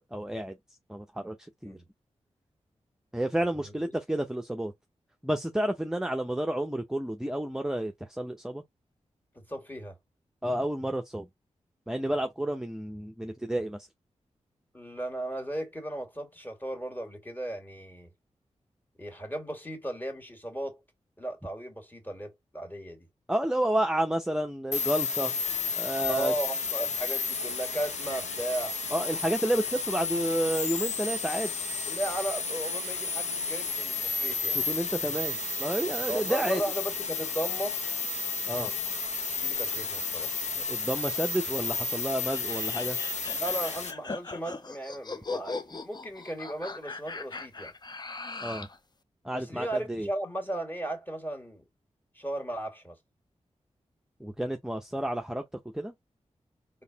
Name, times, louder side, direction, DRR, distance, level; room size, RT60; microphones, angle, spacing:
voice 1, 0.1-0.6 0.9-1.4 1.6-1.8 3.1-4.7 5.2-8.6 10.4-11.3 11.9-13.9 23.3-25.3 25.8-26.3 28.9-31.6 34.5-36.6 38.5-38.7 40.6-43.0 48.4-48.7 49.2-50.1 54.2-55.4 55.7-55.9, right 1 dB, 5° right, 0.7 m, -30 dB
voice 2, 9.5-10.0 14.7-18.1 19.0-20.8 21.2-23.1 26.1-28.8 31.9-34.6 36.1-37.8 39.4-40.3 43.3-47.7 49.3-51.6 52.1-53.0, right 1 dB, 15° left, 2.1 m, -35 dB
sound 1, 24.7-43.9, left 4 dB, 75° left, 1.0 m, -32 dB
sound 2, 42.2-48.8, left 3 dB, 35° left, 0.6 m, -39 dB
3.9 x 3.6 x 2.9 m
cardioid pair, 45°, 12 cm